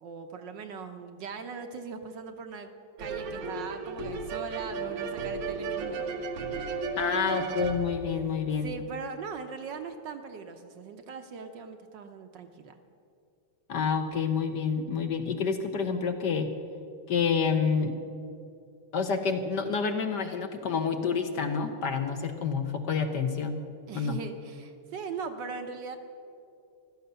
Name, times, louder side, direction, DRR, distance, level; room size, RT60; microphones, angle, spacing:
voice 1, 0.0-2.7 3.0-6.2 7.1-7.4 8.6-12.8 23.9-26.0, right 5 dB, 65° right, 6 dB, 1.3 m, -40 dB
sound 1, 3.0-8.8, right 4 dB, 85° right, 2.1 m, -34 dB
voice 2, 6.7-8.7 13.7-16.5 17.1-17.9 18.9-23.6 23.9-24.2, left 6 dB, 60° left, 6 dB, 1.3 m, -28 dB
15.5 x 12.5 x 6.9 m, 2.6 s
omnidirectional pair, 2.4 m